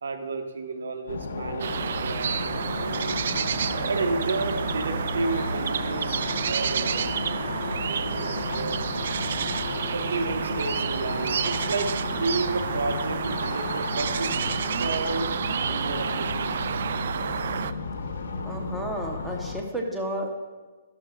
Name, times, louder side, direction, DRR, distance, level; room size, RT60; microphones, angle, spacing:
voice 1, 0.0-3.2 3.9-7.1 7.8-8.9 9.9-14.3 14.7-15.3 15.6-16.6, right 3 dB, 85° right, 5 dB, 1.4 m, -32 dB
sound 1, 1.1-19.6, left 4 dB, 85° left, 1.2 m, -33 dB
sound 2, 1.6-17.7, right 7 dB, 60° right, 0.4 m, -30 dB
voice 2, 18.4-20.3, equal, 5° right, -1 dB, 1.0 m, -32 dB
13.0 x 12.0 x 2.5 m, 1.3 s
hypercardioid pair, 165°, 0 cm